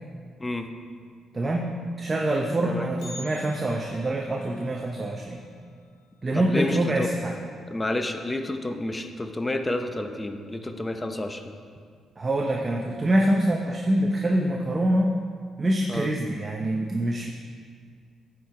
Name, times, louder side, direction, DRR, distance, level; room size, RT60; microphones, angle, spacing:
voice 1, 1.3-5.4 6.2-7.4 12.2-15.1 15.6-17.3, right 1 dB, 25° right, 1 dB, 0.6 m, -25 dB
Bell, 3.0-7.1 7.4-7.5 8.0-8.1 8.9-9.0 9.7-10.0 10.4-10.5, left 2 dB, 80° left, 2.3 m, -49 dB
voice 2, 6.3-7.1 7.7-11.5 15.9-16.1, left 1 dB, 20° left, 6 dB, 0.6 m, -30 dB
10.5 x 4.5 x 4.7 m, 2.1 s
cardioid pair, 90°, 0 cm